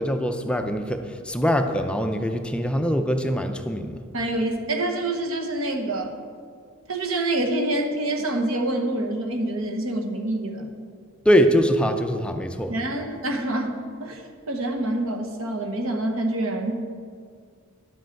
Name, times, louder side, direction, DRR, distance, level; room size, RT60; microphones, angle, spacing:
voice 1, 0.0-4.0 11.3-12.7, equal, 5° left, 6 dB, 0.4 m, -23 dB
voice 2, 4.1-6.2 6.9-10.7 12.7-14.2 14.5-16.9, right 1 dB, 85° right, 4 dB, 1.1 m, -26 dB
11.5 x 7.7 x 4.6 m, 2.1 s
head